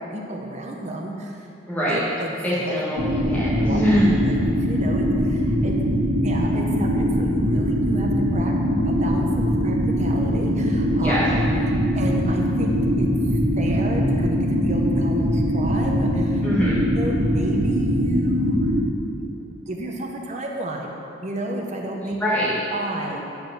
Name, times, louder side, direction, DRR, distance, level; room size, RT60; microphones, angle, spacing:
voice 1, 0.0-1.5 1.9-2.8 3.4-3.8 4.2-5.8 6.2-8.5 8.8-11.4 11.9-16.5 16.9-18.7 19.2-19.3 19.7-20.9 21.2-22.2 22.7-23.2, right 1 dB, 35° right, 1 dB, 0.8 m, -32 dB
voice 2, 1.7-2.0 2.4-4.1 11.0-11.2 16.4-16.8 22.0-22.5, equal, 10° left, -9 dB, 1.5 m, -23 dB
sound 1, 3.0-18.8, equal, 70° right, 1.9 m, -22 dB
9.5 x 4.8 x 6.6 m, 2.6 s
head